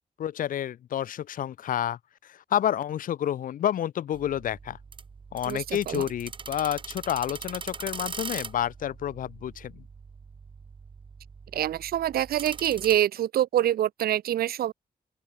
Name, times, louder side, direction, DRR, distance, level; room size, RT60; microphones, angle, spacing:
voice 1, 0.2-4.8 5.3-9.8, left 10 dB, 60° left, 0.6 m, -29 dB
sound 1, 4.1-13.0, right 5 dB, 30° right, 3.6 m, -42 dB
voice 2, 5.5-6.1 11.5-14.7, right 11 dB, 75° right, 0.6 m, -26 dB
open air
wide cardioid pair, 160°, 16 cm